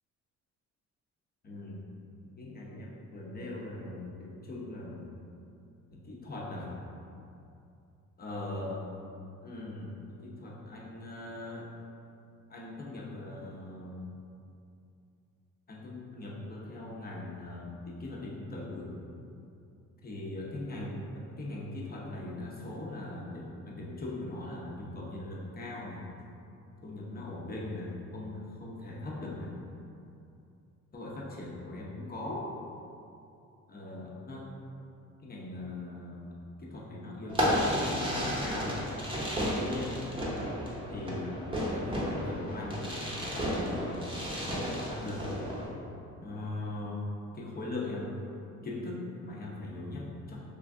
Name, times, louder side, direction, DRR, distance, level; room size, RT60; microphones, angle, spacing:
voice 1, 1.4-1.8 2.2-5.1 5.9-6.7 8.2-8.8 9.4-11.8 12.5-14.1 15.7-18.9 20.0-26.0 26.8-29.5 30.9-32.5 33.7-34.5 35.2-38.9 39.3-40.1 40.9-44.0 44.4-45.3 46.2-48.2 48.6-50.4, left 2 dB, 30° left, -4 dB, 0.7 m, -40 dB
Fireworks, 37.3-45.7, equal, 15° right, 0.8 m, -32 dB
3.2 x 2.4 x 3.5 m, 2.6 s
cardioid pair, 90°, 30 cm